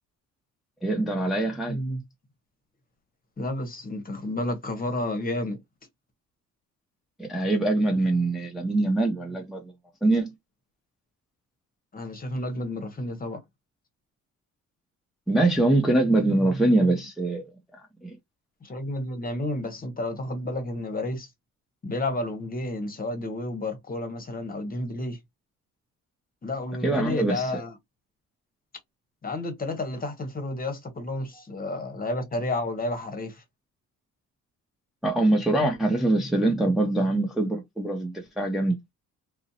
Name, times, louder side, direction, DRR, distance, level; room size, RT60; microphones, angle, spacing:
voice 1, 0.8-1.8 7.2-9.7 10.0-10.3 15.3-17.5 18.0-18.2 26.8-27.6 35.0-38.8, right 2 dB, ahead, 0.5 m, -23 dB
voice 2, 1.7-2.0 3.4-5.6 11.9-13.4 18.6-21.3 21.8-25.2 26.4-27.7 29.2-33.4, left 2 dB, 30° left, 0.9 m, -31 dB
2.5 x 2.0 x 2.7 m
cardioid pair, 90°, 30 cm